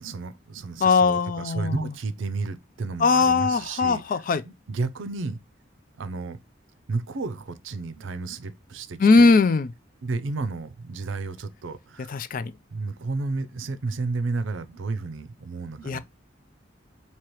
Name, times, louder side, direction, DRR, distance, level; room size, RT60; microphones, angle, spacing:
voice 1, 0.0-5.4 6.0-6.4 6.9-9.3 10.0-12.2 12.7-16.0, right 3 dB, 80° right, 0.5 m, -32 dB
voice 2, 0.8-1.9 3.0-4.4 9.0-9.7 12.1-12.5 15.8-16.0, left 4 dB, 45° left, 0.4 m, -20 dB
4.7 x 2.9 x 2.9 m
head